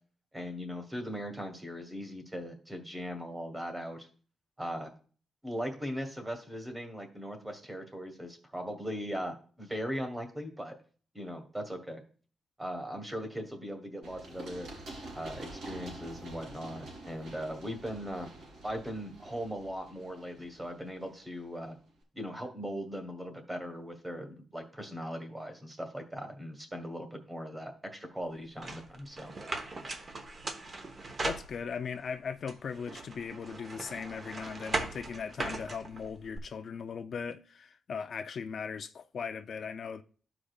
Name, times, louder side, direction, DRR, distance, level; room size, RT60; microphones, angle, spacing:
voice 1, 0.3-4.1 4.6-4.9 5.4-10.7 11.1-12.0 12.6-14.7 15.1-18.3 18.6-21.8 22.1-29.3, equal, 10° right, 1.3 m, -39 dB
Run, 14.0-21.7, right 2 dB, 75° right, 3.0 m, -47 dB
sound 1, 28.6-32.0 32.5-36.4, right 3 dB, 35° right, 1.0 m, -39 dB
voice 2, 31.2-40.0, left 6 dB, 55° left, 0.4 m, -38 dB
13.0 x 4.9 x 2.4 m
cardioid pair, 130°, 0 cm